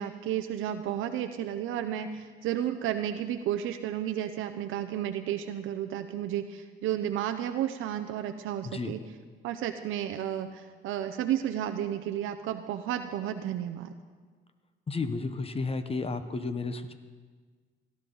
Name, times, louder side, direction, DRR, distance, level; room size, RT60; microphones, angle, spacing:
voice 1, 0.0-9.0 9.4-13.9, right 11 dB, 85° right, 7 dB, 0.6 m, -32 dB
voice 2, 8.6-8.9 14.9-16.9, left 3 dB, 30° left, 10 dB, 0.8 m, -32 dB
17.5 x 11.5 x 3.9 m, 1.5 s
cardioid pair, 90°, 20 cm